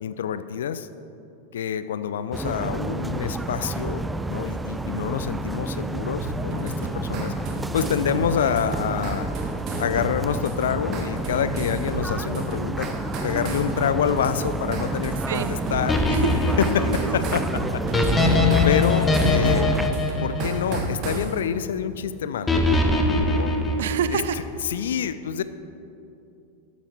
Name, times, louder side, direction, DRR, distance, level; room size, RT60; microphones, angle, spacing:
voice 1, 0.0-0.9 1.5-4.0 4.3-7.3 7.7-9.3 9.8-12.9 13.2-16.0 16.6-19.7 20.2-22.6 23.3-23.5 24.7-25.4, left 8 dB, 60° left, 13 dB, 0.4 m, -27 dB
sound 1, 2.3-19.9, right 2 dB, 10° right, 0.4 m, -30 dB
sound 2, 6.2-21.3, right 2 dB, 40° right, 1.5 m, -33 dB
voice 2, 15.3-15.6 16.1-16.3 17.0-17.4 23.8-24.4, right 9 dB, 60° right, 12 dB, 0.5 m, -28 dB
sound 3, 15.9-21.2 22.5-24.4, left 2 dB, 15° left, 1.1 m, -22 dB
13.0 x 8.3 x 4.6 m, 2.7 s
figure-of-eight pair, 90°, 0 cm